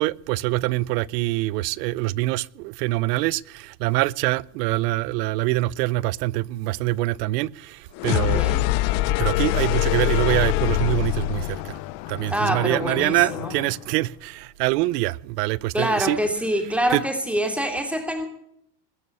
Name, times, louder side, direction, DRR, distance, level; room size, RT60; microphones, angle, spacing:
voice 1, 0.0-8.4 9.2-11.8 12.1-16.2 16.9-17.0, right 18 dB, 85° right, 0.7 m, -24 dB
sound 1, 8.0-13.8, left 18 dB, 60° left, 0.7 m, -24 dB
voice 2, 8.1-8.7 12.3-13.5 15.7-18.3, equal, 5° right, 2.8 m, -25 dB
20.5 x 7.0 x 8.4 m
supercardioid pair, 130°, 47 cm